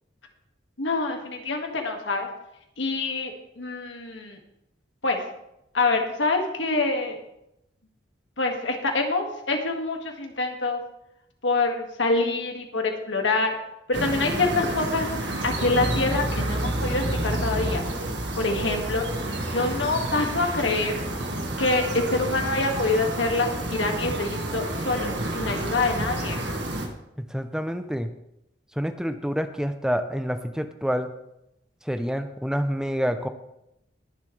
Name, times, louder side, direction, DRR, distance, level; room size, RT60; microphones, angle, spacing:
voice 1, 0.8-2.3 2.8-4.4 5.0-5.2 5.7-7.2 8.4-10.8 11.4-13.5 13.9-15.1 15.4-17.8 18.4-19.0 19.5-21.0 21.6-26.4, left 3 dB, 90° left, 2 dB, 2.0 m, -26 dB
sound 1, 13.9-26.9, right 1 dB, 75° right, 1.6 m, -29 dB
voice 2, 27.2-28.1 28.7-31.1 31.8-33.3, equal, 5° right, 8 dB, 0.5 m, -27 dB
20.5 x 7.3 x 3.3 m, 0.83 s
head